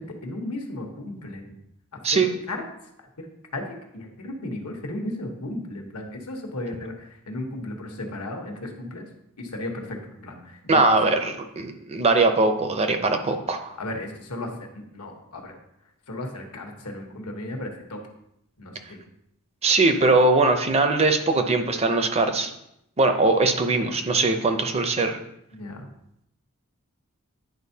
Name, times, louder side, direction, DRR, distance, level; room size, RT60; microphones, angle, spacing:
voice 1, 0.0-1.5 1.9-2.6 3.2-3.3 3.5-3.6 3.9-9.1 9.4-10.9 13.8-15.6 16.1-18.0 18.6-19.0 25.5-25.9, left 1 dB, 80° left, 2 dB, 1.2 m, -35 dB
voice 2, 10.7-13.7 19.6-22.5 23.0-25.2, right 3 dB, 30° right, 6 dB, 0.6 m, -21 dB
10.0 x 4.3 x 2.8 m, 0.79 s
head